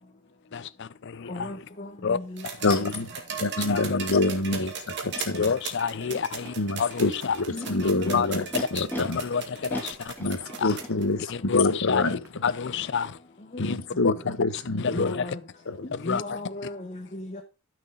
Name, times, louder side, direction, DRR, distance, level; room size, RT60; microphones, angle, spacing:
voice 1, 0.5-1.6 2.0-2.2 2.6-2.8 3.5-4.2 5.3-7.4 7.8-10.1 10.6-10.8 11.3-13.2 13.6-14.1 14.8-15.3 16.0-16.4, left 6 dB, 55° left, 0.5 m, -29 dB
voice 2, 1.3-2.4 3.6-3.8 7.5-8.2 13.5-13.6 14.9-15.4 15.9-17.4, left 1 dB, 35° left, 1.0 m, -36 dB
sound 1, 2.4-11.0 12.2-12.3, right 6 dB, 55° right, 1.9 m, -37 dB
voice 3, 2.6-3.1 3.4-5.5 6.6-8.4 8.7-9.2 10.2-12.2 13.6-15.2 15.7-15.8, left 2 dB, 80° left, 1.1 m, -26 dB
Animal, 5.1-5.2 6.0-6.5 7.3-9.0 9.7-10.9, equal, 10° left, 2.3 m, -37 dB
12.5 x 6.4 x 3.8 m
head